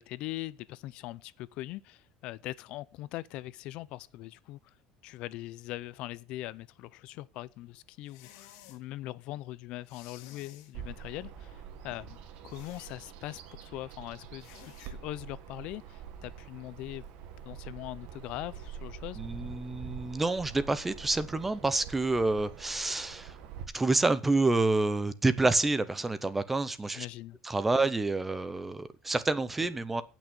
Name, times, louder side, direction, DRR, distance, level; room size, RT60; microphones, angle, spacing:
voice 1, 0.0-4.7 5.0-17.0 17.4-19.2 27.0-27.4 27.8-27.9, left 16 dB, 50° left, 0.5 m, -41 dB
sound 1, 8.0-8.8 9.8-10.7 12.5-13.0 14.4-14.9, left 13 dB, 85° left, 2.0 m, -54 dB
Bird vocalization bird call bird song, 10.7-23.6, right 8 dB, 55° right, 1.9 m, -46 dB
voice 2, 19.2-23.4 23.7-27.1 27.4-30.0, right 2 dB, 10° right, 0.7 m, -28 dB
17.0 x 6.2 x 6.9 m
cardioid pair, 175°, 2 cm